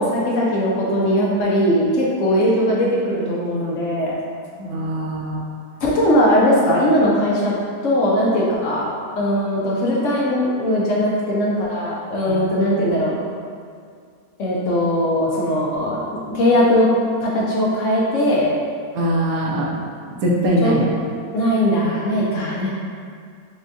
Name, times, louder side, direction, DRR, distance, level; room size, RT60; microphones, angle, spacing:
voice 1, 0.0-4.1 5.8-7.5 7.8-8.9 9.2-13.2 14.4-16.0 16.3-16.9 17.2-18.5 20.6-20.7 21.3-22.7, equal, 65° left, -4 dB, 0.9 m, -19 dB
voice 2, 4.6-5.4 12.3-12.4 18.9-19.7 20.2-20.9, equal, 75° right, -3 dB, 1.1 m, -21 dB
6.1 x 2.2 x 2.6 m, 2.2 s
omnidirectional pair, 1.6 m